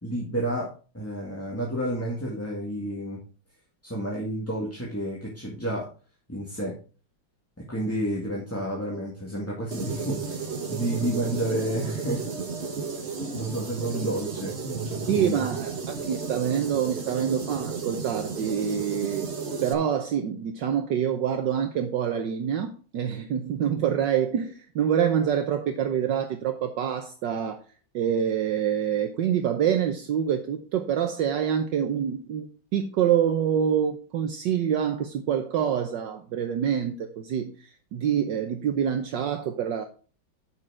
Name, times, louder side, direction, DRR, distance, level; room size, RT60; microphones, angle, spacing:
voice 1, 0.0-3.2 3.8-5.9 6.3-6.7 7.7-12.3 13.3-15.4, right 1 dB, 5° left, -4 dB, 1.9 m, -30 dB
sound 1, 9.7-19.7, right 5 dB, 35° right, 1.5 m, -33 dB
voice 2, 15.1-19.2 19.6-27.6 27.9-39.8, right 8 dB, 70° right, 5 dB, 1.5 m, -26 dB
9.0 x 6.5 x 4.8 m, 0.37 s
omnidirectional pair, 2.1 m